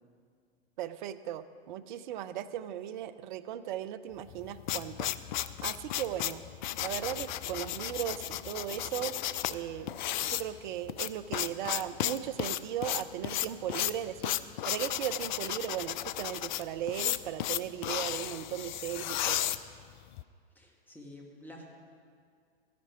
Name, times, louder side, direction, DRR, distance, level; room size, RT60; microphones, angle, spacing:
voice 1, 0.8-5.1 5.6-6.4 6.8-9.2 9.5-10.0 10.2-14.4 14.6-19.5, right 11 dB, 50° right, 13 dB, 0.6 m, -37 dB
sound 1, 4.3-20.2, left 13 dB, 50° left, 0.5 m, -34 dB
voice 2, 20.6-21.6, left 1 dB, 5° left, 0 dB, 1.8 m, -49 dB
13.5 x 10.5 x 4.9 m, 2.1 s
figure-of-eight pair, 100°, 31 cm